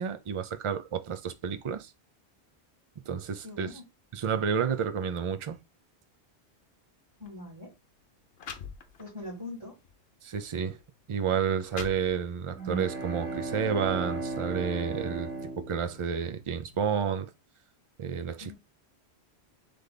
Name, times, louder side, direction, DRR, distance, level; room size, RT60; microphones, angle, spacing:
voice 1, 0.0-1.9 3.1-3.7 4.1-5.6 10.2-10.8 11.1-15.3 15.6-17.3 18.0-18.5, right 7 dB, 45° right, 0.4 m, -30 dB
voice 2, 3.4-3.8 7.2-7.8 9.0-9.8 18.4-18.5, left 2 dB, 25° right, 2.1 m, -42 dB
sound 1, 7.1-7.3 8.0-8.1 8.4-9.3 9.8-10.0 10.8-10.9 11.4-12.5, left 6 dB, 70° left, 0.9 m, -43 dB
sound 2, 12.5-16.5, right 3 dB, 85° right, 1.8 m, -36 dB
3.4 x 3.3 x 3.8 m
omnidirectional pair, 1.1 m